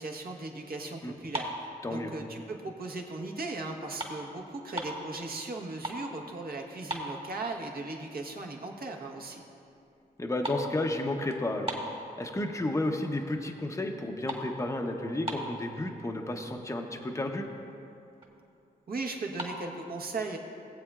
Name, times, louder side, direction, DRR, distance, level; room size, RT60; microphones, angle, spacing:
voice 1, 0.0-1.5 1.9-9.4 18.9-20.4, right 3 dB, 60° right, 1 dB, 1.2 m, -37 dB
sound 1, 1.3-2.6 3.0-3.3 3.6-5.1 5.5-6.1 6.4-6.5 6.8-7.7 8.1-8.2 8.8-8.9 9.2-9.5 9.8-12.6 13.0-13.5 13.8-15.7 16.4-16.5 16.7-17.0 17.4-17.5 17.7-18.4 19.2-19.6, equal, 35° right, 1.6 m, -39 dB
voice 2, 10.2-11.7 12.2-17.5, left 1 dB, 20° left, 2 dB, 0.8 m, -32 dB
18.5 x 7.7 x 2.4 m, 2.6 s
cardioid pair, 65°, 17 cm